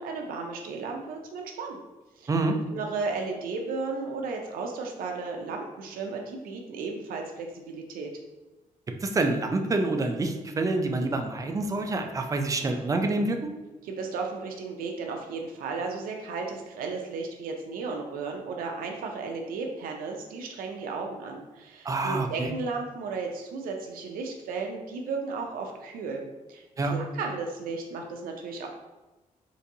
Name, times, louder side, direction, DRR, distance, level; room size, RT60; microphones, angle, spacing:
voice 1, 0.0-1.8 2.2-2.3 2.7-8.1 13.8-28.7, right 4 dB, 85° right, 2 dB, 0.4 m, -34 dB
voice 2, 2.3-2.6 9.0-13.4 21.8-22.5 26.8-27.0, right 2 dB, 25° right, 4 dB, 0.4 m, -27 dB
3.9 x 2.6 x 2.6 m, 1.1 s
cardioid pair, 105°, 14 cm